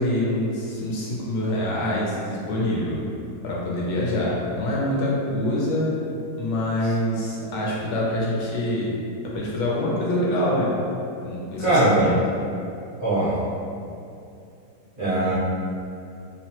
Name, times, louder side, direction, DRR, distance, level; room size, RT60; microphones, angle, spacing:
voice 1, 0.0-3.0 3.4-5.8 6.4-9.0 9.3-10.7 11.2-12.1, left 1 dB, 75° left, -5 dB, 1.1 m, -25 dB
voice 2, 11.6-12.0 13.0-13.3 15.0-15.3, right 2 dB, 45° right, -15 dB, 0.6 m, -20 dB
2.9 x 2.0 x 2.8 m, 2.5 s
omnidirectional pair, 1.8 m